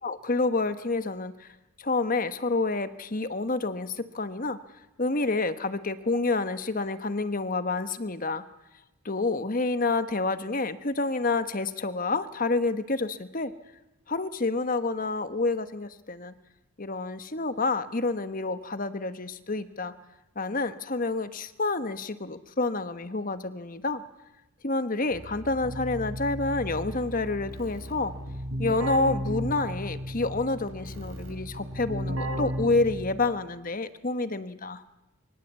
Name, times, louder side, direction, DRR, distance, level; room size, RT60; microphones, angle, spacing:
voice 1, 0.0-1.5 1.8-4.6 5.0-8.4 9.0-13.5 14.1-16.3 16.8-19.9 20.3-24.0 24.6-28.1 28.6-34.8, left 3 dB, 40° left, 11 dB, 1.2 m, -28 dB
Keyboard (musical), 25.1-33.4, equal, 80° right, 6.3 m, -35 dB
25.0 x 24.5 x 8.3 m, 0.98 s
head